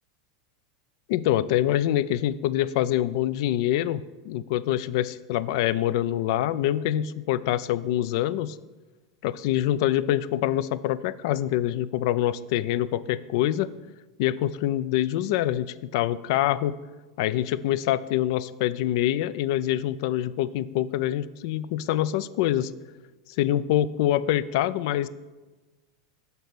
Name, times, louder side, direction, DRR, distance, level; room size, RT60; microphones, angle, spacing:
voice 1, 1.1-8.6 9.2-13.7 14.2-16.7 17.2-22.7 23.4-25.1, left 12 dB, 65° left, 17 dB, 0.3 m, -25 dB
6.7 x 4.1 x 6.0 m, 1.2 s
hypercardioid pair, 105°, 3 cm